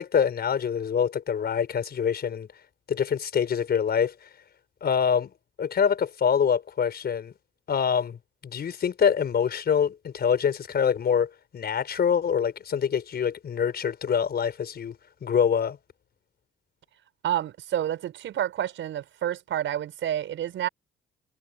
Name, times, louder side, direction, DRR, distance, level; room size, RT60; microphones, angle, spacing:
voice 1, 0.0-2.5 2.9-4.1 4.8-5.3 5.6-7.3 7.7-8.2 8.4-14.9 15.2-15.8, left 7 dB, 55° left, 4.9 m, -25 dB
voice 2, 17.2-20.7, right 11 dB, 75° right, 6.5 m, -29 dB
cardioid pair, 90°, 20 cm